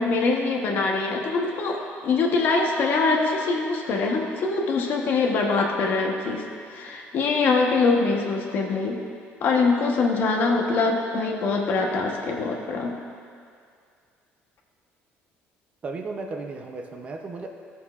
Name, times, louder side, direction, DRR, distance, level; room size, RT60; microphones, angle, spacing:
voice 1, 0.0-9.0 9.4-12.9, left 4 dB, 50° left, 1 dB, 1.0 m, -23 dB
voice 2, 15.8-17.5, right 3 dB, 30° right, 3 dB, 0.6 m, -35 dB
14.0 x 6.9 x 2.4 m, 2.3 s
cardioid pair, 155°, 4 cm